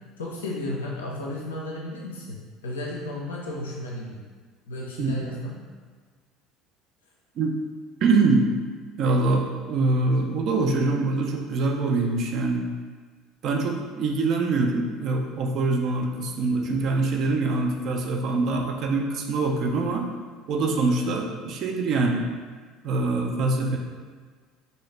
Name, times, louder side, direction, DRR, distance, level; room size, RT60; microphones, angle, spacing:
voice 1, 0.2-2.4 2.6-4.2 4.7-5.6 20.8-21.2, left 1 dB, 85° left, -3 dB, 0.5 m, -33 dB
voice 2, 8.0-8.5 9.0-12.6 13.4-20.1 20.5-22.3 22.8-23.8, right 3 dB, 55° right, 2 dB, 0.4 m, -24 dB
2.7 x 2.7 x 3.2 m, 1.5 s
hypercardioid pair, 65°, 0 cm